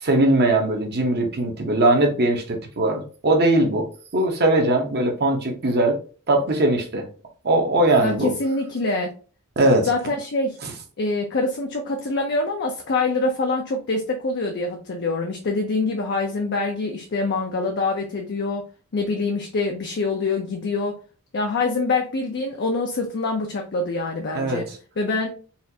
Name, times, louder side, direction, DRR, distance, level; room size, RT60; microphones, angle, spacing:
voice 1, 0.0-3.9 4.1-6.0 6.3-7.0 7.4-8.3 9.6-9.9 24.3-24.6, right 2 dB, 45° right, 0.9 m, -20 dB
voice 2, 8.0-9.1 9.8-10.6 11.0-18.6 18.9-21.0 21.3-24.7 25.0-25.3, left 3 dB, 50° left, 0.5 m, -25 dB
4.1 x 2.5 x 2.8 m
head